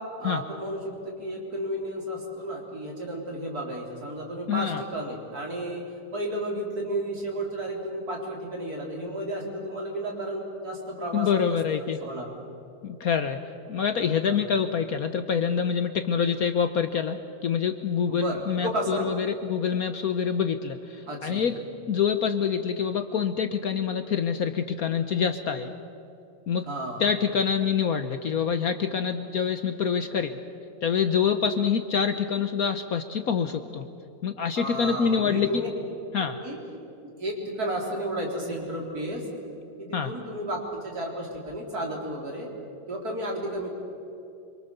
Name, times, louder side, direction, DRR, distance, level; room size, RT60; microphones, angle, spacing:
voice 1, 0.2-5.8 6.1-12.3 14.3-14.4 18.1-19.1 21.1-21.4 26.7-27.0 34.6-35.7 36.3-36.6 37.2-39.3 39.8-42.5 42.9-43.7, right 1 dB, 50° right, -1 dB, 4.3 m, -32 dB
voice 2, 4.5-4.8 11.1-12.0 12.8-13.4 13.7-21.6 21.9-25.7 26.5-26.7 27.0-30.4 30.8-33.9 34.2-35.5 36.1-36.4 39.9-40.1, left 7 dB, 60° left, 8 dB, 1.2 m, -26 dB
26.5 x 24.0 x 6.9 m, 2.8 s
omnidirectional pair, 2.0 m